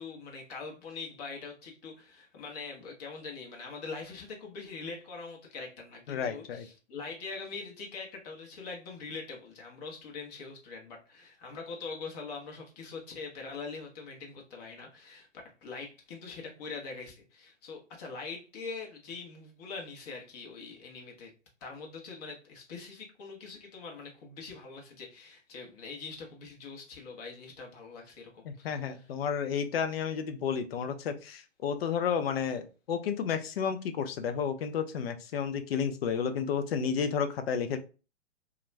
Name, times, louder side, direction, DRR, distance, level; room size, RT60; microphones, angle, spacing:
voice 1, 0.0-15.3 15.6-21.3 21.6-29.1, left 4 dB, 35° left, 0 dB, 0.8 m, -43 dB
voice 2, 6.1-6.7 28.4-37.8, left 7 dB, 55° left, 8 dB, 0.5 m, -31 dB
2.3 x 2.1 x 3.1 m, 0.34 s
hypercardioid pair, 130°, 36 cm